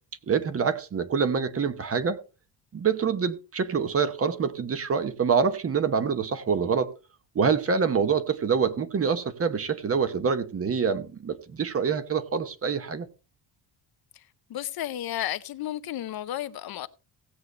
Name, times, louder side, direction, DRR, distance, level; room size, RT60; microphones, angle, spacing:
voice 1, 0.3-2.2 2.7-6.9 7.3-13.1, right 6 dB, 30° right, 0.9 m, -26 dB
voice 2, 14.5-16.9, left 12 dB, 55° left, 0.6 m, -32 dB
16.5 x 8.0 x 3.2 m
cardioid pair, 140°, 46 cm